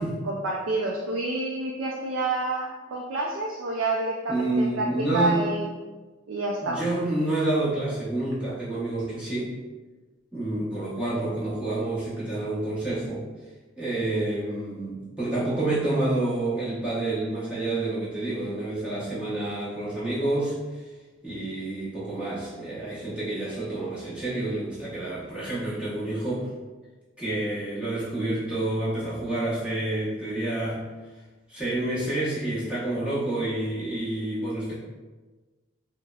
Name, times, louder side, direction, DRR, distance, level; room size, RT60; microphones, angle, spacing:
voice 1, 0.0-4.9 5.1-5.7 6.3-6.8, right 2 dB, 75° right, -2 dB, 0.4 m, -28 dB
voice 2, 4.3-5.5 6.6-9.5 10.3-13.3 13.8-20.9 21.2-26.5 27.2-30.8 31.5-34.7, right 2 dB, 5° right, -10 dB, 0.9 m, -28 dB
3.3 x 2.0 x 2.3 m, 1.3 s
head